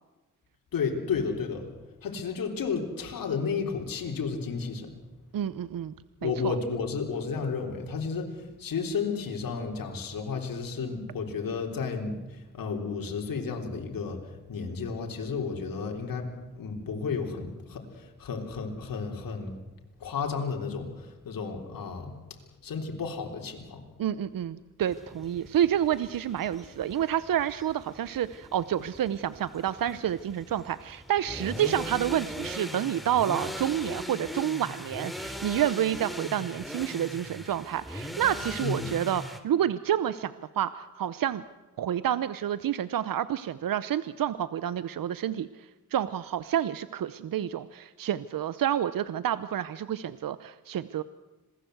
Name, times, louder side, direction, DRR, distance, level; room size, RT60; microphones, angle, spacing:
voice 1, 0.7-1.7 2.0-4.9 6.2-14.2 14.5-16.3 16.6-19.5 20.0-22.2 22.6-23.8 38.6-38.8, left 5 dB, 85° left, 2 dB, 3.8 m, -32 dB
voice 2, 5.3-5.9 6.2-6.5 24.0-41.4 41.8-51.0, right 10 dB, 80° right, 15 dB, 0.9 m, -29 dB
sound 1, 24.8-39.4, equal, ahead, 3.2 m, -40 dB
27.0 x 20.0 x 8.0 m, 1.1 s
cardioid pair, 70°, 33 cm